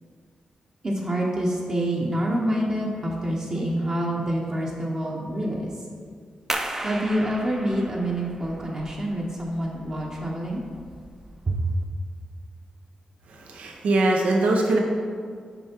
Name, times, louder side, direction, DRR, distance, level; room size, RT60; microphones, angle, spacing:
voice 1, 0.8-5.7 6.8-10.6 11.5-11.6, right 1 dB, 35° right, -3 dB, 0.9 m, -27 dB
sound 1, 6.5-11.8, right 1 dB, 20° right, 0.5 m, -36 dB
voice 2, 13.3-14.8, right 2 dB, 90° right, 0 dB, 0.9 m, -22 dB
7.0 x 4.8 x 4.4 m, 2.1 s
wide cardioid pair, 120°, 2 cm